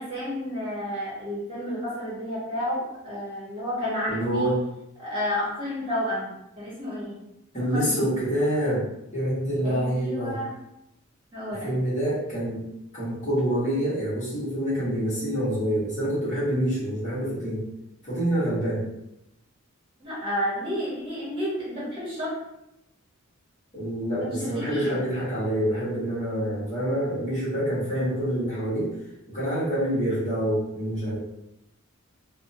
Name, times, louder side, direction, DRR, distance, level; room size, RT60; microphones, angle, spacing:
voice 1, 0.0-4.5 5.0-6.3 6.6-7.1 7.7-8.1 9.6-10.5 11.3-11.7 20.0-22.4 24.2-25.0, left 1 dB, 25° right, -8 dB, 1.0 m, -31 dB
voice 2, 4.1-4.6 7.5-10.4 11.6-12.6 12.9-17.6 18.0-18.8 23.7-28.9 29.3-31.2, right 1 dB, 35° left, -10 dB, 1.1 m, -26 dB
2.7 x 2.1 x 2.6 m, 0.87 s
head